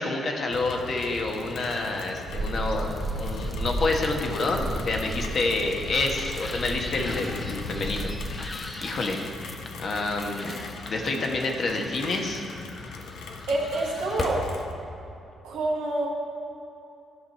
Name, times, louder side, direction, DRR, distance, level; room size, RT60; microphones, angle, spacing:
voice 1, 0.0-10.5 10.9-12.4, left 2 dB, 55° left, 1 dB, 1.3 m, -28 dB
Rain, 0.5-14.7, left 5 dB, 80° left, 0.7 m, -40 dB
sound 1, 1.0-14.6, left 2 dB, 35° left, 1.0 m, -40 dB
sound 2, 2.3-8.6, right 1 dB, 50° right, 1.1 m, -34 dB
voice 2, 13.5-14.4 15.4-16.1, right 2 dB, 90° right, -4 dB, 1.6 m, -27 dB
12.0 x 5.4 x 4.3 m, 2.8 s
supercardioid pair, 55°, 0 cm